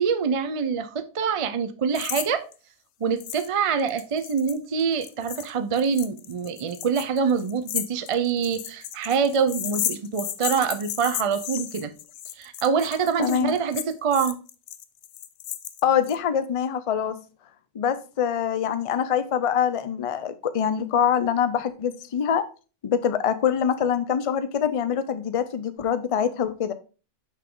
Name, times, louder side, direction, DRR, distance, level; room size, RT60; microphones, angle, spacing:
voice 1, 0.0-2.4 3.0-11.9 12.4-14.4, right 6 dB, 40° right, 0.5 m, -25 dB
sound 1, 2.0-2.3 2.5-2.6 3.2-3.5 3.8-16.2, left 11 dB, 75° left, 1.0 m, -34 dB
voice 2, 13.2-13.6 15.8-17.2 17.7-22.4 22.8-26.7, left 8 dB, 45° left, 0.4 m, -24 dB
6.4 x 5.7 x 3.8 m
omnidirectional pair, 1.4 m